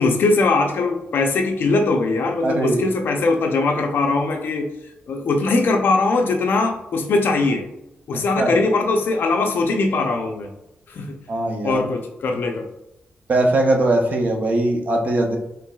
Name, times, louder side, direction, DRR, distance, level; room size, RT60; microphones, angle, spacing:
voice 1, 0.0-4.7 5.1-7.7 8.1-10.5 10.9-11.2 11.6-12.7, left 3 dB, 60° left, 3 dB, 0.5 m, -20 dB
voice 2, 2.4-2.8 8.4-8.6 11.3-11.8 13.3-15.4, right 2 dB, 45° right, 1 dB, 0.6 m, -20 dB
4.5 x 3.1 x 2.3 m, 0.87 s
wide cardioid pair, 170°, 4 cm